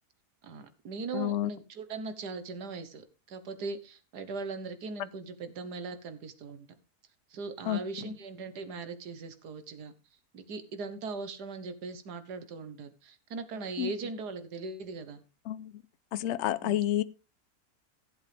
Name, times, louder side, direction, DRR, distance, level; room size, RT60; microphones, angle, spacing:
voice 1, 0.4-6.7 7.3-9.9 10.3-15.2 16.6-16.8, right 4 dB, 80° right, 1.8 m, -39 dB
voice 2, 1.1-1.5 7.7-8.1 13.8-13.9 15.5-15.8 16.1-17.0, left 12 dB, 60° left, 0.7 m, -30 dB
14.5 x 7.9 x 3.4 m
omnidirectional pair, 1.7 m